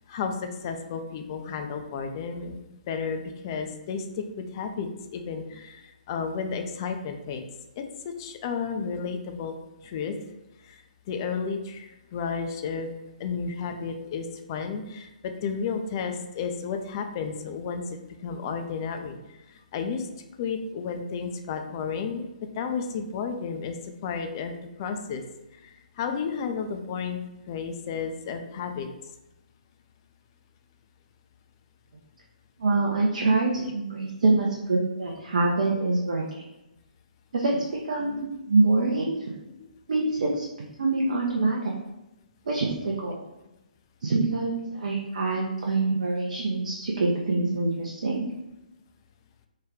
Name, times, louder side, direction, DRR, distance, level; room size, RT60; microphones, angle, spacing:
voice 1, 0.1-2.6 2.9-7.5 7.8-9.5 9.8-10.1 10.6-10.8 11.1-12.9 13.2-20.1 20.4-22.3 22.6-24.5 24.8-25.2 25.6-27.2 27.5-28.9 39.6-39.7, left 5 dB, 30° left, 5 dB, 0.3 m, -32 dB
voice 2, 32.6-36.2 37.3-39.3 39.9-40.4 40.8-41.7 42.5-43.2 44.0-48.2, right 3 dB, 55° right, -2 dB, 0.5 m, -25 dB
3.3 x 2.2 x 3.4 m, 0.98 s
figure-of-eight pair, 130°, 5 cm